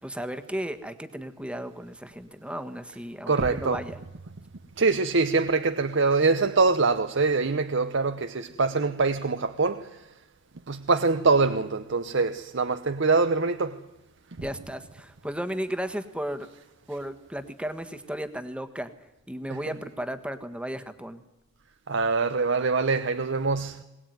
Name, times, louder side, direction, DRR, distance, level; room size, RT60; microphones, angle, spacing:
voice 1, 0.0-4.0 14.4-16.5 16.9-18.9 19.3-21.2, equal, 5° right, 10 dB, 1.5 m, -34 dB
voice 2, 3.3-3.8 4.8-9.8 10.7-13.8 21.9-23.8, right 4 dB, 65° right, 9 dB, 0.9 m, -24 dB
21.5 x 19.5 x 9.5 m, 0.95 s
head